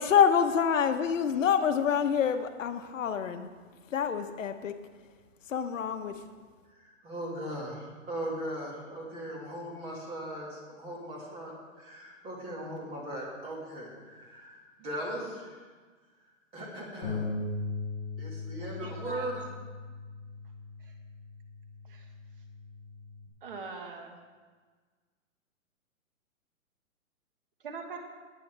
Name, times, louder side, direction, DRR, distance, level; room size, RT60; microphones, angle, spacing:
voice 1, 0.0-3.5 3.9-4.7 5.5-6.2, left 7 dB, 70° left, 8 dB, 1.1 m, -26 dB
voice 2, 6.7-15.7 16.5-17.3 18.2-19.4, right 1 dB, 15° right, -3 dB, 2.0 m, -39 dB
Bass guitar, 17.0-23.3, left 3 dB, 15° left, 0.5 m, -39 dB
voice 3, 18.6-19.3 20.8-20.9 21.9-22.1 23.4-24.2 27.6-28.0, right 5 dB, 40° right, 4 dB, 1.5 m, -42 dB
19.5 x 8.3 x 3.4 m, 1.4 s
hypercardioid pair, 170°, 40 cm